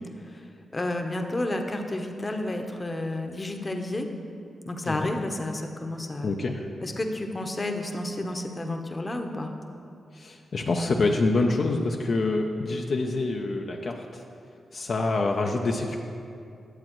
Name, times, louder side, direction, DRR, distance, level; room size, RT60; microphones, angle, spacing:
voice 1, 0.2-4.1 4.6-6.3 6.8-9.5, left 1 dB, 30° left, 4 dB, 0.8 m, -31 dB
voice 2, 6.2-6.7 10.1-14.2 14.7-16.0, left 3 dB, 65° left, 1 dB, 0.5 m, -26 dB
11.0 x 7.3 x 3.1 m, 2.5 s
supercardioid pair, 50°, 0 cm